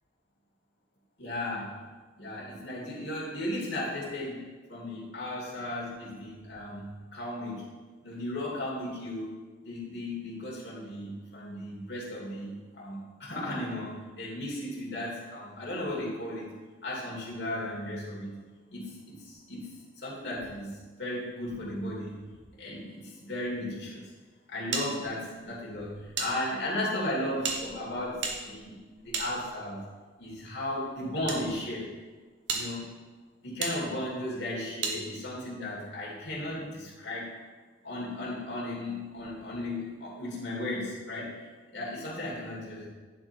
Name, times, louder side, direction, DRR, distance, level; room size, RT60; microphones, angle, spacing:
voice 1, 1.2-1.7 2.2-7.6 8.0-9.3 9.6-16.5 16.8-18.3 18.7-20.7 21.0-22.2 22.6-24.0 24.5-29.8 30.2-31.9 32.5-32.8 33.4-37.3 37.8-41.5 41.7-42.9, left 1 dB, 70° left, -5 dB, 2.6 m, -35 dB
sound 1, 24.7-26.3 26.6-26.7 27.4-29.9 30.7-31.4 32.0-32.1 32.5-32.6 33.6-33.7 34.8-35.0, right 4 dB, 70° right, 1.1 m, -34 dB
10.0 x 4.4 x 4.5 m, 1.4 s
head